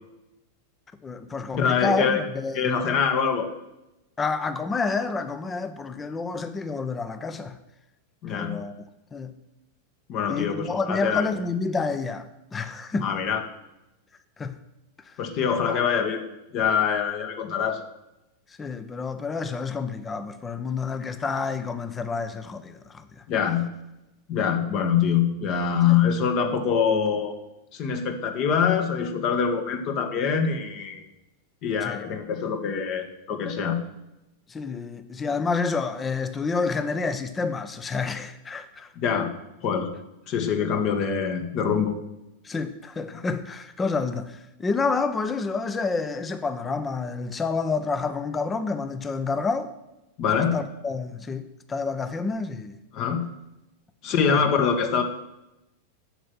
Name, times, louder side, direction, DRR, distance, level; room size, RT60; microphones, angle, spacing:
voice 1, 1.0-2.8 4.2-7.6 8.3-8.7 9.1-9.3 10.3-13.2 14.4-14.6 15.0-15.2 18.6-23.2 25.9-26.0 31.8-32.0 34.5-38.9 42.4-49.7 50.3-52.8 54.1-54.4, left 4 dB, 15° left, 1.0 m, -29 dB
voice 2, 1.6-2.2 2.5-3.5 8.2-8.6 10.1-11.3 13.0-13.4 15.2-16.3 16.5-17.8 23.3-23.7 24.3-27.3 27.7-31.1 31.6-33.8 39.0-39.3 39.6-39.9 40.3-41.9 50.2-50.6 52.9-53.3 54.0-55.0, left 7 dB, 40° left, 1.7 m, -24 dB
9.3 x 7.8 x 9.3 m
figure-of-eight pair, 90°, 0 cm